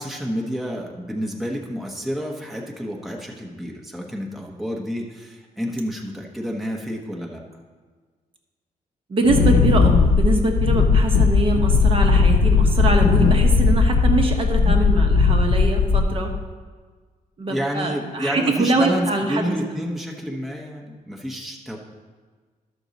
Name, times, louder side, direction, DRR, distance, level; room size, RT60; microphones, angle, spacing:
voice 1, 0.0-7.4 17.5-21.8, equal, ahead, -1 dB, 1.0 m, -29 dB
voice 2, 9.1-16.3 17.4-19.6, right 2 dB, 40° right, 3 dB, 1.0 m, -23 dB
Wind, 9.2-16.4, left 4 dB, 90° left, 0.6 m, -17 dB
12.5 x 6.1 x 4.0 m, 1.5 s
wide cardioid pair, 140°, 15 cm